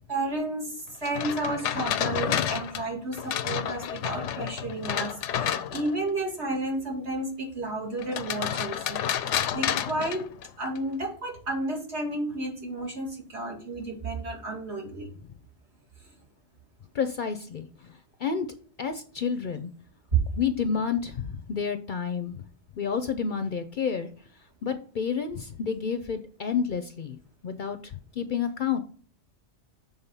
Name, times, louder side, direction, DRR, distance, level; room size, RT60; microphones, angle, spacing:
voice 1, 0.1-10.3 10.6-15.1 20.3-20.4, right 1 dB, 65° right, -2 dB, 2.9 m, -32 dB
sound 1, 1.0-6.1 8.0-10.8, left 9 dB, 90° left, 0.9 m, -30 dB
voice 2, 16.9-18.5 18.8-19.7 20.4-22.4 22.8-24.1 24.6-27.2 27.4-27.8 28.2-28.8, left 6 dB, 55° left, 10 dB, 0.6 m, -30 dB
7.3 x 3.7 x 5.5 m, 0.42 s
omnidirectional pair, 1.2 m